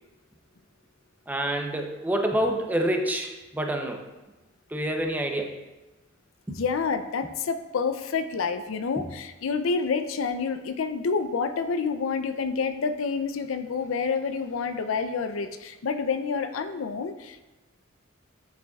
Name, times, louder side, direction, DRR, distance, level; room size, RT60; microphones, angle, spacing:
voice 1, 1.3-4.0 4.7-5.6 6.5-6.6 9.0-9.1, right 1 dB, 10° right, 3 dB, 0.6 m, -27 dB
voice 2, 6.5-17.5, left 5 dB, 80° left, 9 dB, 0.5 m, -28 dB
9.3 x 6.8 x 2.3 m, 1.1 s
head